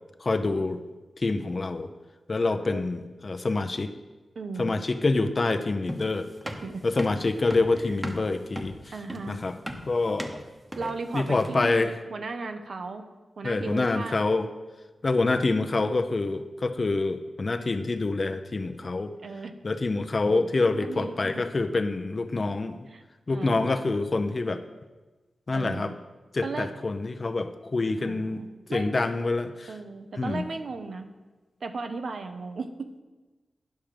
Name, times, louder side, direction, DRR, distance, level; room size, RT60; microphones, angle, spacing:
voice 1, 0.2-0.8 1.2-1.9 2.3-3.9 4.6-6.3 6.8-8.7 9.3-9.5 9.9-10.4 11.1-11.9 13.4-14.5 15.0-19.2 19.6-22.9 23.3-24.6 25.5-25.9 26.3-28.4 28.7-29.7 30.2-30.4, left 3 dB, 50° left, 8 dB, 0.7 m, -26 dB
voice 2, 4.3-4.8 6.6-6.8 7.8-8.0 8.9-9.4 10.8-13.0 13.4-14.2 19.2-19.5 20.3-20.4 20.9-21.4 22.9-23.0 23.3-23.7 25.5-25.9 26.4-26.7 28.0-29.0 29.7-31.1 31.6-32.7, right 4 dB, 75° right, 7 dB, 0.8 m, -36 dB
sound 1, 5.9-11.7, equal, 15° right, 1.0 m, -37 dB
10.5 x 5.8 x 5.1 m, 1.2 s
cardioid pair, 55°, 0 cm